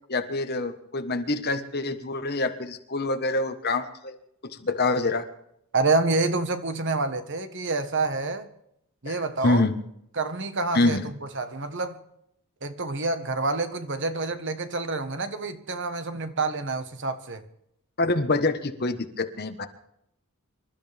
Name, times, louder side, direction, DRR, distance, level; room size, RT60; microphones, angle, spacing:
voice 1, 0.1-4.1 4.4-5.3 9.1-9.7 10.7-11.0 18.0-19.7, left 2 dB, 45° left, 1.4 m, -26 dB
voice 2, 5.7-8.5 9.0-9.7 10.2-11.0 11.3-12.0 12.6-17.4, right 3 dB, 55° right, 1.5 m, -27 dB
26.5 x 13.0 x 3.6 m
head